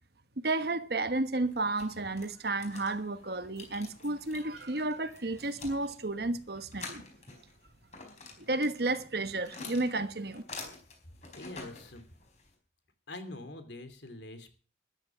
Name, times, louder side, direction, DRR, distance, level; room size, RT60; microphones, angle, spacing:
voice 1, 0.4-7.0 8.4-10.4, right 2 dB, 55° right, 1.2 m, -32 dB
sound 1, 1.5-12.5, left 4 dB, 35° left, 4.5 m, -49 dB
voice 2, 11.3-12.0 13.1-14.6, left 2 dB, 70° left, 2.9 m, -44 dB
13.5 x 11.5 x 6.1 m
head